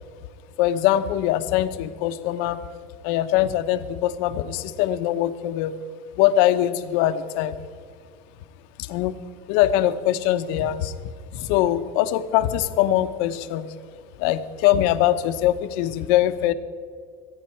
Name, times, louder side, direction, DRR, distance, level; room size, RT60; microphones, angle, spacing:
voice 1, 0.6-2.6 3.0-5.7 6.2-7.6 8.8-9.2 9.5-10.9 11.3-13.7 14.2-16.5, left 12 dB, 70° left, 11 dB, 0.9 m, -22 dB
24.5 x 9.7 x 4.5 m, 2.1 s
supercardioid pair, 130°, 15 cm